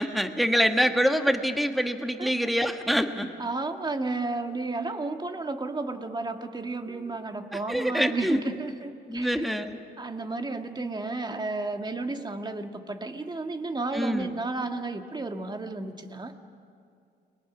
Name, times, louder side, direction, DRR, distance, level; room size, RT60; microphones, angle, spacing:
voice 1, 0.0-3.3 6.9-7.1 7.7-8.4 9.1-9.8 13.9-14.3, equal, ahead, 6 dB, 1.6 m, -25 dB
voice 2, 2.2-2.5 3.4-9.5 10.0-16.4, right 3 dB, 20° right, 5 dB, 1.8 m, -32 dB
30.0 x 22.5 x 6.2 m, 2.4 s
cardioid pair, 90°, 20 cm